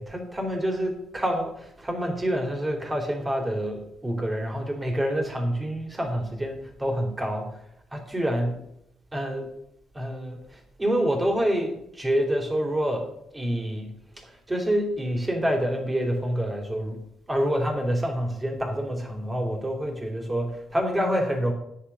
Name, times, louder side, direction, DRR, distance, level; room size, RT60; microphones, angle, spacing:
voice 1, 0.0-7.6 7.9-8.6 9.1-9.5 9.9-17.0 17.3-21.5, equal, 20° right, 2 dB, 3.6 m, -27 dB
9.8 x 8.7 x 5.6 m, 0.78 s
cardioid pair, 70°, 0 cm